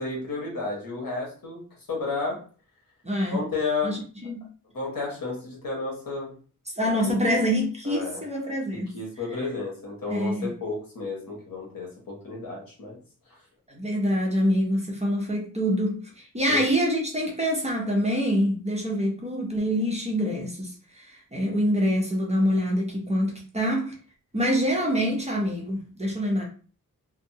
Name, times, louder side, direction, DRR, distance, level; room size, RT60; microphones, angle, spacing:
voice 1, 0.0-1.6 1.9-2.4 3.3-4.0 4.7-6.3 7.0-7.3 7.8-8.2 8.7-13.0 16.5-16.6, left 3 dB, 75° left, 1.2 m, -32 dB
voice 2, 3.0-3.4 3.8-4.5 6.7-9.0 10.1-10.5 13.7-24.0 24.3-26.4, equal, 20° right, 0.6 m, -26 dB
2.6 x 2.1 x 2.7 m
wide cardioid pair, 140°, 35 cm